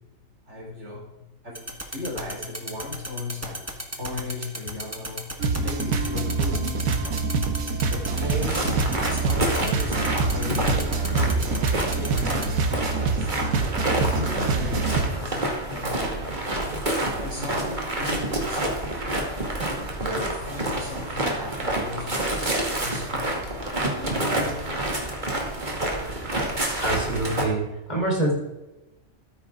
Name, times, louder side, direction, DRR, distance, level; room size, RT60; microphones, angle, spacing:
voice 1, 0.5-1.0 1.4-5.2 5.6-7.3 7.9-8.7 9.1-13.3 13.8-16.7 17.1-19.5 20.0-23.5 23.9-24.6, left 3 dB, 55° right, -3 dB, 4.4 m, -36 dB
sound 1, 1.6-12.5, right 1 dB, 10° right, 1.3 m, -33 dB
sound 2, 5.4-15.1, right 4 dB, 80° right, 1.5 m, -26 dB
sound 3, 8.1-27.4, right 1 dB, 35° right, 2.2 m, -28 dB
voice 2, 26.8-28.3, right 2 dB, 30° left, -3 dB, 4.2 m, -25 dB
13.0 x 9.8 x 3.7 m, 1.0 s
omnidirectional pair, 1.5 m